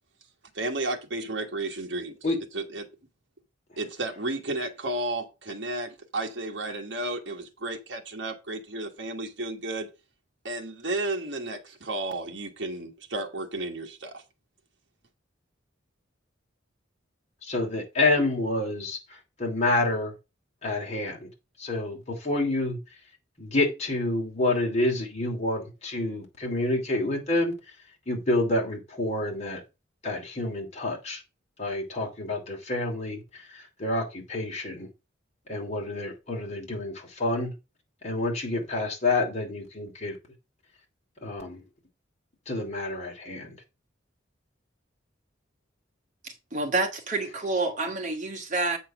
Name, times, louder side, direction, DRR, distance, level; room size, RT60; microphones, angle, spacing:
voice 1, 0.5-2.2 2.5-2.9 3.8-9.9 10.4-14.2, right 2 dB, 60° right, 1.4 m, -33 dB
voice 2, 17.4-19.0 19.4-20.1 20.6-21.3 21.6-22.8 23.4-27.5 28.1-29.6 30.0-31.2 31.6-33.2 33.5-34.9 35.5-37.5 38.0-40.2 41.2-41.6 42.5-43.5, left 2 dB, 35° left, 2.7 m, -28 dB
voice 3, 46.2-48.8, right 3 dB, 40° right, 1.9 m, -28 dB
8.1 x 4.3 x 6.0 m
head